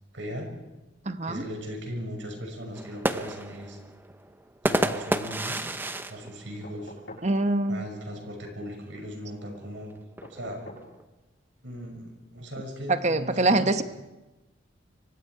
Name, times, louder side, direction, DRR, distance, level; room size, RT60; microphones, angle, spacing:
voice 1, 0.1-0.5 1.2-3.8 4.6-5.8 6.1-6.9 7.7-9.9 10.3-10.6 11.6-13.8, equal, 80° right, 2 dB, 6.4 m, -38 dB
voice 2, 1.1-1.4 7.2-7.8 12.9-13.8, right 2 dB, 35° right, 10 dB, 1.1 m, -24 dB
sound 1, 2.7-7.4 7.8-7.9 8.2-8.6 9.5-11.0, right 1 dB, 10° right, 0.8 m, -31 dB
sound 2, 6.6-7.4 10.2-10.9 12.5-12.6, left 1 dB, 80° left, 7.3 m, -45 dB
29.5 x 24.0 x 4.8 m, 1.1 s
head